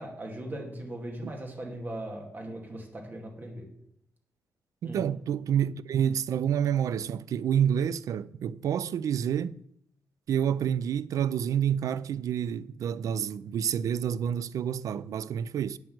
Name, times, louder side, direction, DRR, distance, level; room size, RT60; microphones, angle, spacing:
voice 1, 0.0-3.7 4.8-5.0, right 1 dB, 30° right, 2.4 m, -39 dB
voice 2, 4.8-9.5 10.3-15.8, right 9 dB, 70° right, 0.4 m, -28 dB
9.1 x 6.0 x 7.8 m
wide cardioid pair, 135°, 6 cm